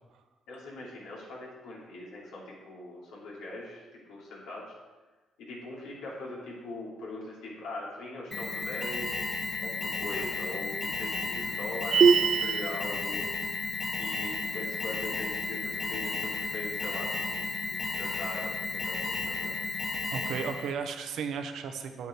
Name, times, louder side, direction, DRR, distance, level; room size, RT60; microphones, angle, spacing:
voice 1, 0.5-4.7 5.4-13.2 14.0-19.5, left 2 dB, 90° left, -5 dB, 3.2 m, -41 dB
Alarm, 8.3-20.7, left 3 dB, 35° left, 1.7 m, -33 dB
sound 1, 11.9-12.8, right 6 dB, 50° right, 0.3 m, -21 dB
voice 2, 20.1-22.1, right 6 dB, 75° right, 6 dB, 0.9 m, -34 dB
8.8 x 8.4 x 4.6 m, 1.2 s
cardioid pair, 90°, 0 cm